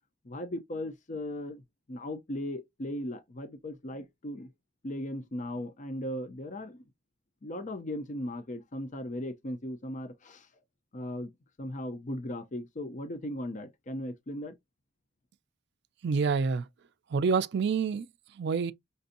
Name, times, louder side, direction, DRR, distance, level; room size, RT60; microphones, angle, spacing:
voice 1, 0.2-1.6 1.9-4.5 4.8-6.8 7.4-10.5 10.9-11.3 11.6-14.5, left 1 dB, 40° left, 0.6 m, -37 dB
voice 2, 16.0-16.6 17.1-18.1 18.4-18.7, right 5 dB, 60° right, 0.4 m, -27 dB
5.3 x 2.6 x 2.5 m
head